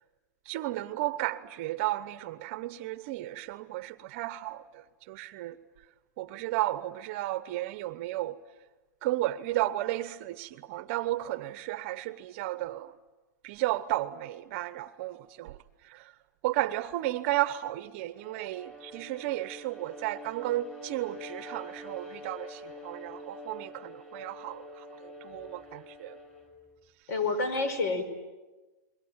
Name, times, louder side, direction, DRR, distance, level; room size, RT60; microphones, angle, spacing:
voice 1, 0.5-5.5 6.2-8.3 9.0-12.9 13.4-15.6 15.9-16.1 16.4-26.2, right 16 dB, 40° right, 1.0 m, -33 dB
Bowed string instrument, 18.2-26.6, equal, 10° left, 5.3 m, -46 dB
voice 2, 27.1-28.0, left 3 dB, 60° left, 5.3 m, -28 dB
29.5 x 22.5 x 8.9 m
hypercardioid pair, 155°, 10 cm